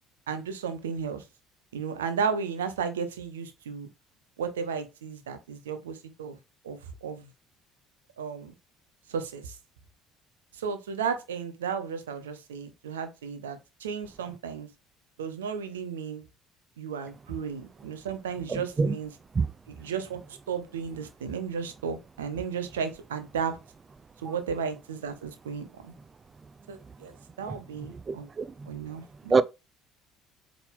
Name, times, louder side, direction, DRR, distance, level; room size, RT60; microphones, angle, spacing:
voice 1, 0.3-1.2 1.7-3.9 4.4-6.4 6.6-7.3 8.2-8.5 9.1-9.6 10.5-14.7 15.2-16.2 16.8-19.1 19.7-23.6 24.2-25.9 26.7-28.3 28.7-29.4, right 6 dB, 75° right, 1.0 m, -34 dB
voice 2, 18.5-18.9 19.3-19.5 27.5-27.6 28.1-28.7 29.3-29.4, right 4 dB, 25° right, 0.5 m, -25 dB
8.2 x 3.9 x 3.5 m
figure-of-eight pair, 55°, 0 cm